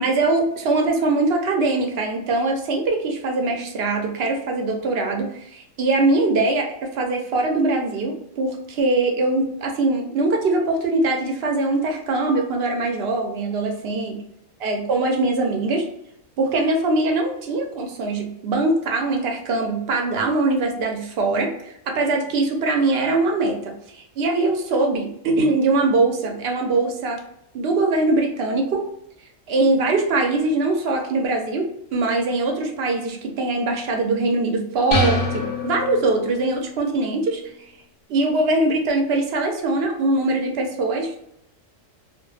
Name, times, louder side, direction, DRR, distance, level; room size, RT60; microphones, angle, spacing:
voice 1, 0.0-14.1 14.6-15.9 16.4-27.2 27.5-28.8 29.5-37.4 38.1-41.3, right 2 dB, 65° right, 2 dB, 0.6 m, -22 dB
sound 1, 34.9-36.5, left 1 dB, 65° left, 0.7 m, -24 dB
2.3 x 2.1 x 3.0 m, 0.76 s
omnidirectional pair, 1.4 m